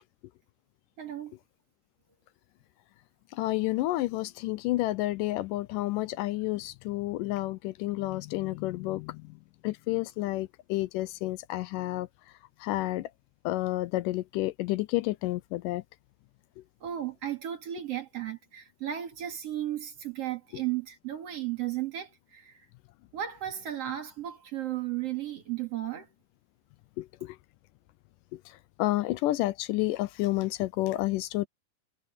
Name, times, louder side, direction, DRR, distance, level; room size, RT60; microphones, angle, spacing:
voice 1, 1.0-1.3 16.8-22.5 23.1-26.1, right 12 dB, 50° right, 2.9 m, -34 dB
voice 2, 3.3-9.2 9.6-12.1 12.6-13.1 13.5-15.8 27.0-27.4 28.8-31.5, left 17 dB, 80° left, 2.2 m, -30 dB
omnidirectional pair, 3.9 m